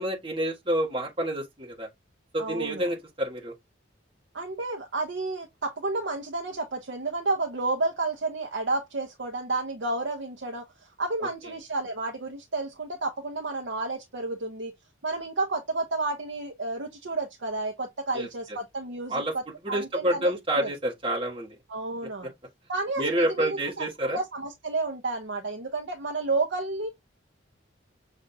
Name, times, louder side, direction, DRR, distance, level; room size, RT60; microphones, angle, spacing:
voice 1, 0.0-1.9 2.3-3.5 18.1-18.6 19.1-19.3 19.6-21.5 23.0-24.2, right 1 dB, 30° right, 1.6 m, -28 dB
voice 2, 2.4-2.9 4.3-10.6 11.0-14.7 15.0-20.7 21.7-22.3 22.7-26.9, right 3 dB, 70° right, 0.8 m, -31 dB
6.5 x 2.6 x 2.6 m
head